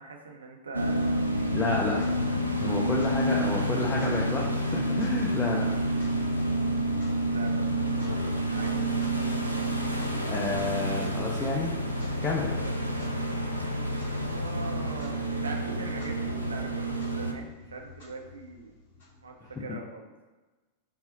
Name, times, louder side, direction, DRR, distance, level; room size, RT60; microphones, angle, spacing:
voice 1, 0.0-2.3 3.2-3.7 5.9-6.2 7.3-8.8 11.1-11.2 12.5-13.1 14.2-18.7 19.2-20.1, right 3 dB, 75° right, 2 dB, 0.5 m, -42 dB
sound 1, 0.7-17.3, right 1 dB, 90° left, 0.3 m, -29 dB
Clock, 1.0-19.7, left 3 dB, 60° left, 1.0 m, -50 dB
voice 2, 1.5-2.0 2.6-5.7 10.3-11.8 12.2-12.5, left 3 dB, 15° left, -3 dB, 0.5 m, -30 dB
3.9 x 2.0 x 3.8 m, 1.2 s
figure-of-eight pair, 90°, 0 cm